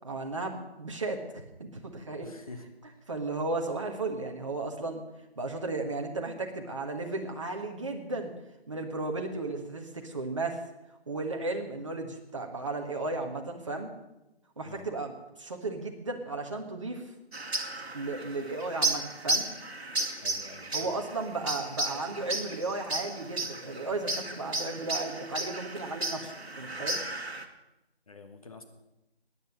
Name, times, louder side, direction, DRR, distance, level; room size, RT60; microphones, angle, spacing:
voice 1, 0.0-2.3 3.1-5.0 5.4-8.3 8.7-10.6 11.1-13.9 14.6-15.1 15.4-17.0 17.9-19.4 20.7-27.0, right 3 dB, 30° right, 3 dB, 1.4 m, -34 dB
voice 2, 2.2-2.7 14.6-14.9 20.2-21.1 28.1-28.6, left 3 dB, 35° left, 5 dB, 1.3 m, -47 dB
sound 1, 17.3-27.4, right 2 dB, 70° right, 1.6 m, -34 dB
14.5 x 10.0 x 6.6 m, 0.94 s
figure-of-eight pair, 165°, 32 cm